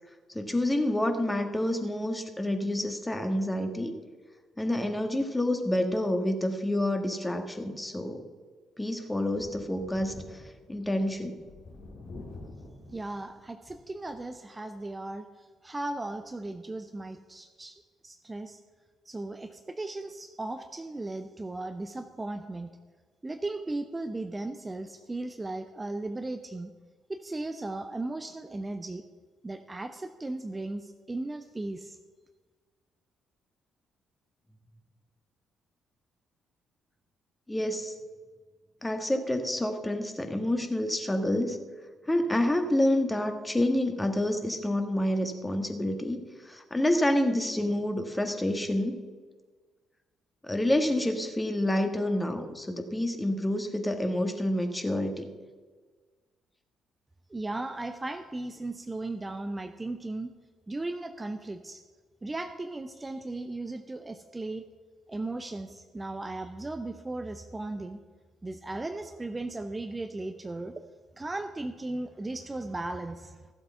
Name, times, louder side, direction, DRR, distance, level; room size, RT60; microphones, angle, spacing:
voice 1, 0.3-3.9 4.6-8.2 8.8-10.4 10.7-11.4 37.5-37.9 38.8-41.6 42.1-49.0 50.4-55.3, left 1 dB, 15° left, 5 dB, 1.8 m, -28 dB
Thunder, 9.3-14.4 14.8-14.9 16.2-16.3, left 2 dB, 50° left, 2.8 m, -48 dB
voice 2, 12.9-18.6 19.0-22.7 23.2-26.7 27.1-29.0 29.4-32.0 57.3-60.3 60.7-61.8 62.2-64.7 65.1-68.0 68.4-70.7 71.2-73.4, right 2 dB, 20° right, 8 dB, 0.7 m, -36 dB
14.5 x 7.6 x 5.8 m, 1.4 s
figure-of-eight pair, 45°, 0 cm